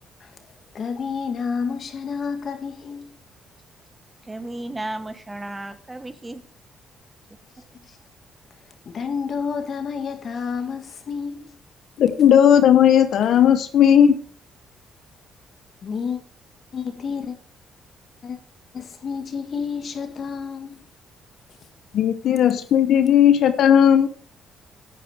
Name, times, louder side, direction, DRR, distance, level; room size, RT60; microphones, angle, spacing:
voice 1, 0.7-3.2 7.8-8.0 8.9-11.6 15.8-16.2 16.7-17.4 18.2-18.4 18.7-20.8, left 6 dB, 50° left, 2.0 m, -30 dB
voice 2, 4.3-6.4, right 2 dB, 20° right, 1.2 m, -33 dB
voice 3, 12.0-14.2 21.9-24.1, left 9 dB, 70° left, 0.9 m, -15 dB
10.5 x 9.2 x 4.8 m
cardioid pair, 90°, 0 cm